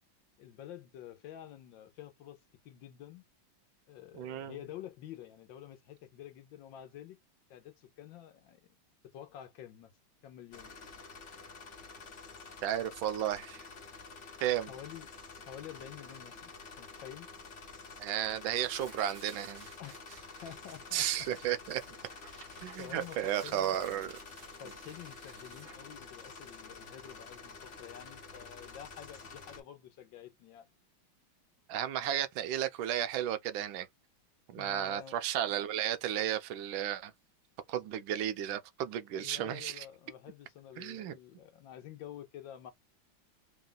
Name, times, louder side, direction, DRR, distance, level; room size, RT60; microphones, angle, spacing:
voice 1, 0.4-2.4 2.6-3.2 3.9-7.2 7.5-8.6 9.1-9.9 10.2-10.7 14.7-15.1 15.5-17.3 19.8-20.0 20.4-21.3 22.6-24.0 24.6-30.7 34.6-35.2 39.1-42.7, left 11 dB, 75° left, 1.4 m, -49 dB
voice 2, 4.1-4.5 12.6-13.7 14.4-14.7 18.0-19.7 20.9-21.8 22.6-24.1 31.7-33.9 34.5-37.1 37.7-39.8 40.8-41.2, right 11 dB, 90° right, 1.4 m, -33 dB
sound 1, 10.5-29.6, left 4 dB, 45° left, 1.2 m, -49 dB
Tearing, 14.7-28.9, right 5 dB, 50° right, 1.3 m, -58 dB
3.9 x 2.3 x 3.8 m
omnidirectional pair, 2.2 m